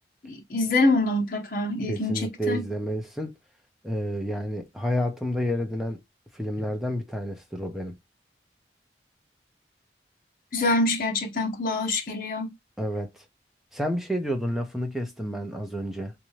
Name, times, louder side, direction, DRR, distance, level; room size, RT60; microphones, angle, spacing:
voice 1, 0.2-2.6 10.5-12.5, left 2 dB, 50° left, 0.9 m, -25 dB
voice 2, 1.9-3.4 3.8-6.0 6.3-8.0 12.8-13.1 13.7-16.1, equal, ahead, 0.7 m, -30 dB
3.6 x 2.8 x 3.1 m
head